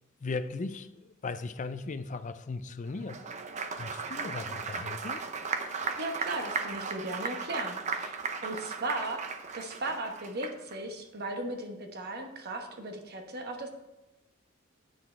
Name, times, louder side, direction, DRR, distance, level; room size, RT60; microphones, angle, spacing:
voice 1, 0.2-3.3 3.7-5.2, left 3 dB, 35° left, 0.5 m, -37 dB
Applause, 3.0-10.8, right 5 dB, 35° right, 0.6 m, -36 dB
voice 2, 5.9-9.3 9.5-13.7, right 2 dB, 50° right, 1.1 m, -37 dB
9.3 x 6.2 x 4.4 m
head